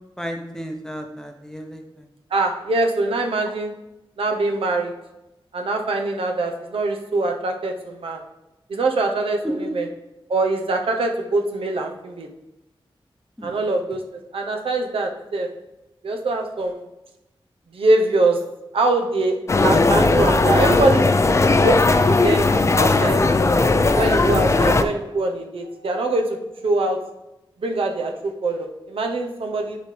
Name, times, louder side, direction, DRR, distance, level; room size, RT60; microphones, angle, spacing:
voice 1, 0.2-2.1 9.4-9.7 13.4-13.7 24.3-24.6, equal, 5° left, 3 dB, 0.7 m, -32 dB
voice 2, 2.3-3.7 4.2-4.9 5.5-8.2 8.7-9.9 10.3-12.3 13.4-14.0 14.3-15.5 16.0-16.8 17.7-18.4 18.7-19.4 19.6-21.1 21.6-23.4 24.0-27.0 27.6-29.8, right 2 dB, 80° right, 3 dB, 0.8 m, -23 dB
sound 1, 19.5-24.8, left 3 dB, 30° left, 0.4 m, -17 dB
10.5 x 4.2 x 3.3 m, 0.95 s
wide cardioid pair, 135°, 9 cm